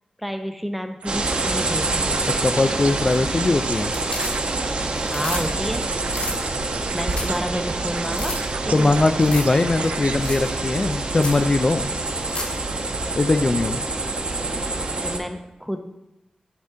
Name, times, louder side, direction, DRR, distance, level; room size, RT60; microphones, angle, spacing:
voice 1, 0.2-2.3 5.1-5.9 6.9-8.4 8.7-9.0 15.0-15.8, equal, ahead, 7 dB, 0.7 m, -30 dB
sound 1, 1.0-10.1, right 5 dB, 75° right, 0.4 m, -35 dB
sound 2, 1.1-15.2, right 2 dB, 50° right, 0.9 m, -26 dB
voice 2, 2.1-3.9 8.7-11.9 13.2-13.8, left 2 dB, 35° left, 8 dB, 0.4 m, -20 dB
sound 3, 2.9-3.5 3.8-4.7 5.0-5.4 5.7-5.8 6.1-6.4 6.8-6.9 7.1-7.4 7.7-7.8 8.1-8.4 9.2-9.6 9.8-9.9 10.2-10.5 10.8-10.9 11.2-11.4 12.1-12.6 14.8-14.9, left 2 dB, 55° left, 1.7 m, -32 dB
9.6 x 4.2 x 3.7 m, 0.97 s
wide cardioid pair, 75°, 2 cm